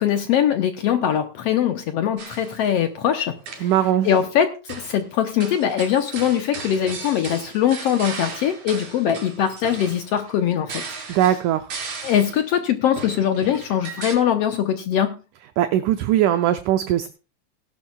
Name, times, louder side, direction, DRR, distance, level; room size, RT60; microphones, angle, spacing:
voice 1, 0.0-3.3 3.6-3.7 4.0-10.8 11.1-11.2 12.0-15.1, left 9 dB, 85° left, 6 dB, 1.4 m, -22 dB
sound 1, 2.2-2.7 3.3-3.8 4.7-5.0 5.4-12.5 13.0-14.2, right 4 dB, 55° right, 4.6 m, -36 dB
voice 2, 3.6-4.1 11.1-11.7 15.6-17.1, right 12 dB, 75° right, 8 dB, 1.9 m, -20 dB
18.0 x 11.5 x 2.3 m, 0.34 s
omnidirectional pair, 4.0 m